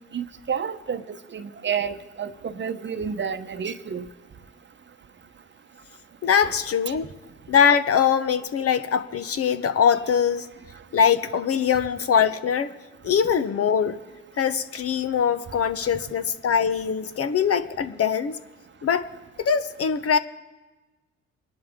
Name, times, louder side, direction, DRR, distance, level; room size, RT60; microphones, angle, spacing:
voice 1, 0.1-4.1 6.4-6.5, right 7 dB, 40° right, 10 dB, 0.9 m, -30 dB
voice 2, 6.2-7.1 7.5-10.5 10.9-12.7 13.0-14.0 14.4-18.4 18.8-19.1 19.4-20.2, left 7 dB, 50° left, 11 dB, 0.9 m, -22 dB
24.5 x 11.0 x 3.7 m, 1.2 s
supercardioid pair, 70°, 30 cm